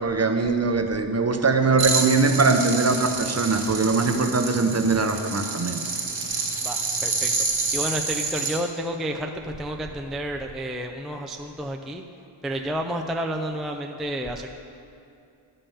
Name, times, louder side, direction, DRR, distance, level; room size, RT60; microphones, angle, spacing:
voice 1, 0.0-5.8, right 3 dB, 30° right, 6 dB, 0.7 m, -22 dB
sound 1, 1.8-8.6, right 4 dB, 65° right, 1.5 m, -28 dB
voice 2, 6.6-7.5 7.7-12.0 12.4-14.5, right 1 dB, ahead, 2 dB, 0.4 m, -30 dB
11.5 x 5.5 x 7.1 m, 2.5 s
wide cardioid pair, 120°, 50 cm